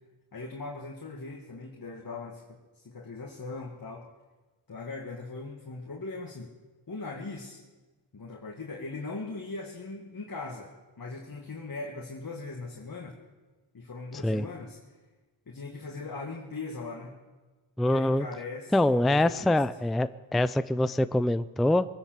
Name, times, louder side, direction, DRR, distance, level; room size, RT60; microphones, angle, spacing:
voice 1, 0.3-4.1 4.7-6.5 6.9-7.6 8.1-13.1 13.7-14.8 15.5-17.2 17.8-19.6, left 3 dB, 45° left, -1 dB, 2.1 m, -40 dB
voice 2, 17.8-18.3 18.7-21.9, left 1 dB, ahead, 14 dB, 0.4 m, -24 dB
22.0 x 10.0 x 6.6 m, 1.3 s
cardioid pair, 55°, 49 cm